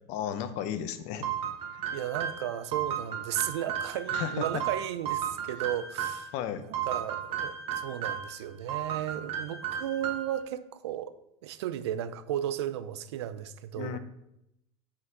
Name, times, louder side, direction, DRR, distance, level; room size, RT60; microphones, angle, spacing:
voice 1, 0.1-1.3 1.7-1.8 4.1-4.6 6.3-6.6 13.7-14.0, left 10 dB, 55° left, 11 dB, 0.6 m, -34 dB
sound 1, 1.2-6.3 6.7-8.4 8.7-10.4, right 9 dB, 45° right, 1.1 m, -34 dB
voice 2, 1.9-6.3 6.7-11.1 11.4-14.0, right 11 dB, 85° right, 13 dB, 0.5 m, -34 dB
5.8 x 3.9 x 4.5 m, 0.82 s
supercardioid pair, 115°, 14 cm